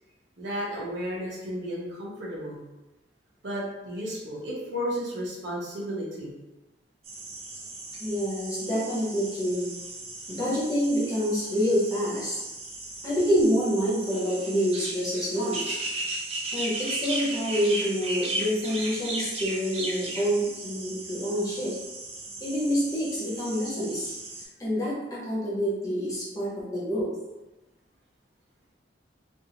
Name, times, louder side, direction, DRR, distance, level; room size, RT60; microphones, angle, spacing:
voice 1, 0.4-2.6 3.4-6.3, equal, 75° right, -5 dB, 0.8 m, -33 dB
sound 1, 7.0-24.4, right 2 dB, 35° right, 0.5 m, -36 dB
voice 2, 8.0-9.7 10.3-12.4 13.0-15.8 16.5-21.8 22.4-24.1 24.6-27.1, equal, 20° left, -7 dB, 0.9 m, -27 dB
2.6 x 2.6 x 2.8 m, 1.0 s
head